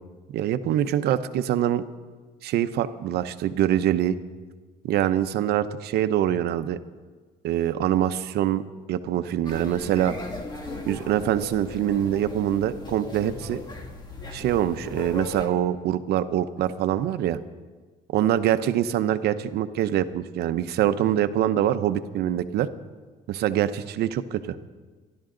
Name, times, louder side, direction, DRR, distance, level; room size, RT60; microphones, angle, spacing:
voice 1, 0.3-1.8 2.4-4.2 4.8-6.8 7.4-8.6 8.9-10.1 10.9-13.6 14.3-17.4 18.1-22.7 23.3-24.6, right 11 dB, 75° right, 11 dB, 0.8 m, -24 dB
sound 1, 9.5-15.5, left 2 dB, 25° left, 2.2 m, -38 dB
26.5 x 12.0 x 3.9 m, 1.4 s
cardioid pair, 110°, 17 cm